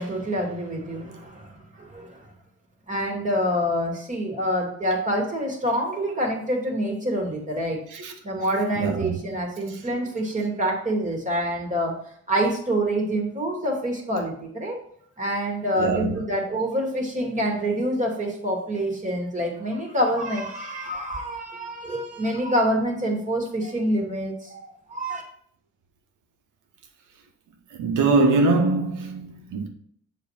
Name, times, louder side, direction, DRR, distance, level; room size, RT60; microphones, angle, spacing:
voice 1, 0.0-2.2 2.9-7.8 8.2-11.9 12.3-14.8 15.2-25.2, equal, 25° right, 2.4 m, -26 dB
voice 2, 8.8-9.2 15.8-16.1 27.8-29.7, right 3 dB, 80° right, 1.4 m, -22 dB
7.2 x 3.3 x 5.8 m
cardioid pair, 90°, 30 cm